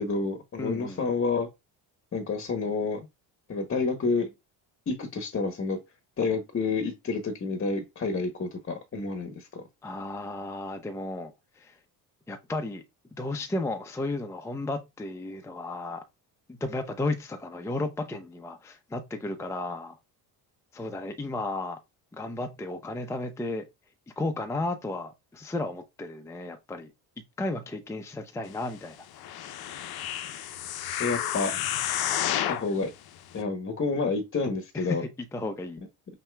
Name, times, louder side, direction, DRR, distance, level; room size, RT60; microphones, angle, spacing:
voice 1, 0.0-1.5 2.1-3.1 3.5-4.3 4.9-5.8 6.2-9.6 31.0-31.6 32.5-32.9 33.3-35.0, left 4 dB, 30° left, 0.9 m, -29 dB
voice 2, 0.6-1.1 9.8-11.8 12.3-12.8 13.1-16.0 16.5-20.0 20.7-21.8 22.1-23.6 24.2-26.9 27.4-29.0 34.7-35.8, left 2 dB, 5° left, 0.6 m, -33 dB
sound 1, 29.2-32.7 33.3-33.4, left 11 dB, 60° left, 0.7 m, -30 dB
5.5 x 2.8 x 2.3 m
supercardioid pair, 85°, 43 cm